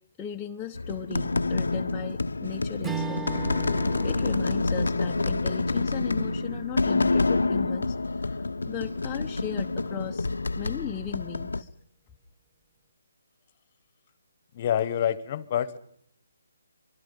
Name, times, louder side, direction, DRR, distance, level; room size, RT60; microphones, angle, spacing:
voice 1, 0.2-3.3 4.0-10.3 10.6-11.7, left 10 dB, 15° left, 0 dB, 1.0 m, -37 dB
sound 1, 0.7-11.6, left 3 dB, 85° left, 1.0 m, -27 dB
Strum, 2.8-7.4, right 5 dB, 10° right, 2.3 m, -38 dB
voice 2, 14.5-15.8, left 10 dB, 35° left, 18 dB, 1.3 m, -27 dB
24.5 x 23.5 x 5.5 m, 0.75 s
hypercardioid pair, 155°, 0 cm